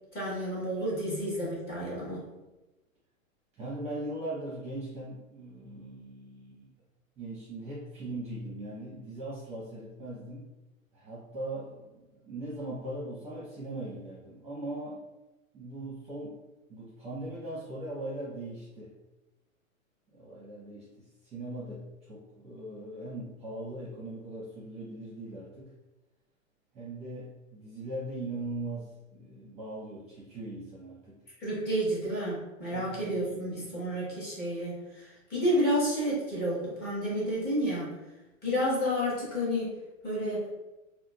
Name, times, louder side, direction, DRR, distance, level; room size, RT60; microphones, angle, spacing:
voice 1, 0.1-2.2 31.4-37.9 38.4-39.8 40.0-40.5, equal, 25° left, -7 dB, 1.3 m, -30 dB
voice 2, 3.6-6.7 7.2-10.5 10.9-15.0 15.5-16.4 16.7-18.9 20.1-25.7 26.7-31.2 32.7-33.8, right 1 dB, 15° right, -6 dB, 0.7 m, -40 dB
3.6 x 2.4 x 2.3 m, 1.0 s
hypercardioid pair, 130°, 41 cm